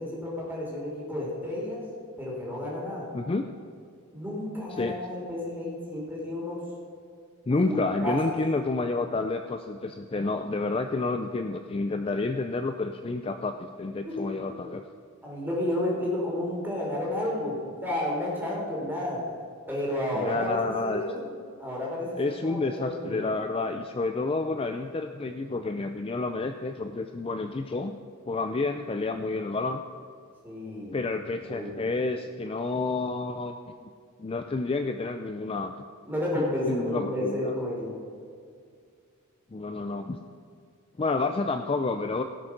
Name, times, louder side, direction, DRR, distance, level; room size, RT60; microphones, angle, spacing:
voice 1, 0.0-1.8 2.2-3.1 4.1-6.6 7.6-7.8 8.0-8.3 14.0-14.3 15.2-19.2 19.7-21.3 21.6-23.3 30.4-31.0 31.4-31.7 36.1-38.0, left 1 dB, 10° right, -4 dB, 3.3 m, -31 dB
voice 2, 7.5-14.8 20.1-21.0 22.2-28.0 28.3-29.8 30.9-33.7 34.2-35.7 36.4-37.5 39.5-40.2 41.0-42.2, left 3 dB, 25° left, 7 dB, 0.3 m, -29 dB
17.5 x 6.3 x 5.9 m, 2.2 s
head